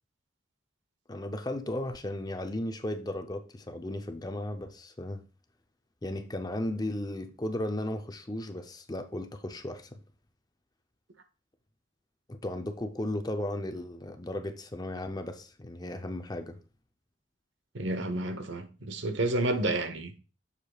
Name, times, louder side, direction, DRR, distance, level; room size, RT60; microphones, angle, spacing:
voice 1, 1.1-5.2 6.0-10.0 12.3-16.6, left 1 dB, 20° left, 0.6 m, -35 dB
voice 2, 17.7-20.1, right 2 dB, 70° right, 1.0 m, -30 dB
7.8 x 6.7 x 2.4 m
head